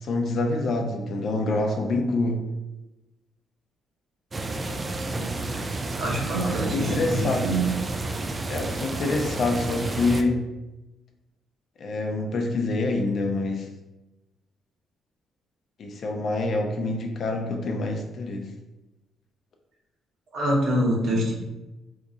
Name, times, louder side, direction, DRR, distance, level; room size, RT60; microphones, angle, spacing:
voice 1, 0.0-2.4 6.4-7.4 8.5-10.4 11.8-13.7 15.8-18.5, left 2 dB, 55° left, 3 dB, 0.5 m, -26 dB
sound 1, 4.3-10.2, right 2 dB, 25° right, 0.3 m, -31 dB
voice 2, 5.1-5.7 6.0-7.6 20.3-21.3, right 1 dB, 65° right, -3 dB, 1.1 m, -26 dB
2.9 x 2.4 x 3.7 m, 1.0 s
cardioid pair, 90°, 0 cm